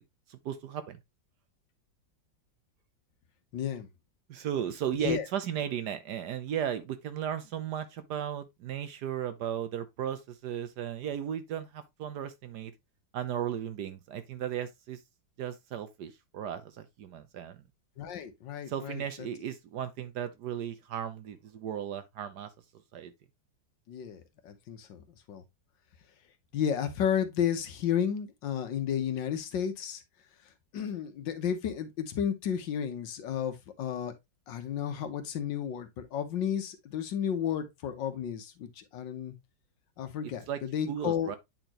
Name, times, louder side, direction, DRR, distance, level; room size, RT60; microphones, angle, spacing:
voice 1, 0.3-1.0 4.3-12.7 13.1-15.0 15.4-17.6 18.7-22.5 22.9-23.1 40.5-40.6 40.9-41.4, right 9 dB, 65° right, 1.2 m, -35 dB
voice 2, 3.5-3.9 5.0-5.2 18.0-19.3 23.9-25.4 26.5-30.0 30.7-34.1 34.5-39.3 40.0-41.3, left 8 dB, 70° left, 1.6 m, -32 dB
8.9 x 4.3 x 2.9 m
omnidirectional pair, 2.1 m